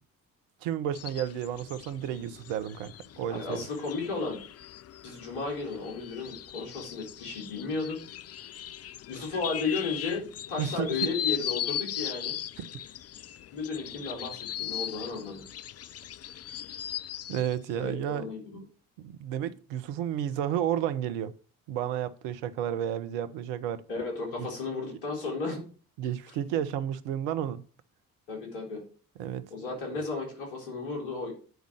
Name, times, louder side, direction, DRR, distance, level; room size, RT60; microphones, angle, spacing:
voice 1, 0.6-3.6 10.6-10.9 12.6-12.7 17.3-18.6 19.0-21.3 21.7-23.8 24.4-24.5 26.0-27.6 29.2-29.4, right 10 dB, 75° right, 1.0 m, -32 dB
sound 1, 0.9-17.5, left 11 dB, 35° left, 0.5 m, -38 dB
voice 2, 3.3-4.4 5.0-8.0 9.1-12.4 13.5-15.4 17.8-18.6 23.9-25.6 26.5-26.6 28.3-28.8 29.5-31.3, left 4 dB, 80° left, 4.4 m, -34 dB
9.4 x 5.2 x 6.4 m
hypercardioid pair, 50°, 44 cm